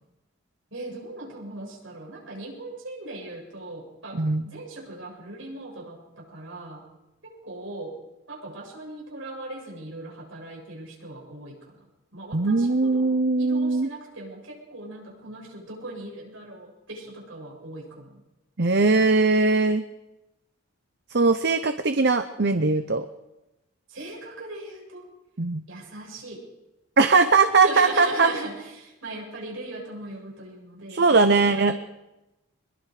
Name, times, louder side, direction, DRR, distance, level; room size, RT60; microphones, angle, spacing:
voice 1, 0.7-6.8 7.2-8.0 8.3-11.8 12.1-18.2 23.9-25.1 25.7-26.5 27.6-31.8, right 2 dB, 70° right, -1 dB, 7.9 m, -39 dB
voice 2, 12.3-13.9 18.6-19.8 21.1-23.1 25.4-25.6 27.0-28.3 30.9-31.7, right 3 dB, 50° right, 9 dB, 0.8 m, -20 dB
24.5 x 21.5 x 5.0 m, 0.98 s
head